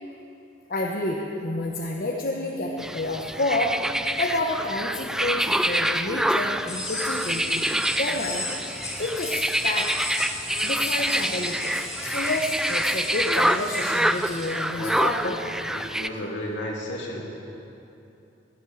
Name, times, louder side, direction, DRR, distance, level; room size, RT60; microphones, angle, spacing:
voice 1, 0.7-3.8 4.2-9.9 10.6-15.4, left 2 dB, 50° left, 0 dB, 1.0 m, -29 dB
sound 1, 2.8-16.1, right 1 dB, 5° right, 0.3 m, -26 dB
sound 2, 6.7-14.5, left 1 dB, 20° left, 3.1 m, -35 dB
voice 2, 15.7-17.2, left 1 dB, 70° left, -3 dB, 3.1 m, -33 dB
15.5 x 10.5 x 7.2 m, 2.9 s
head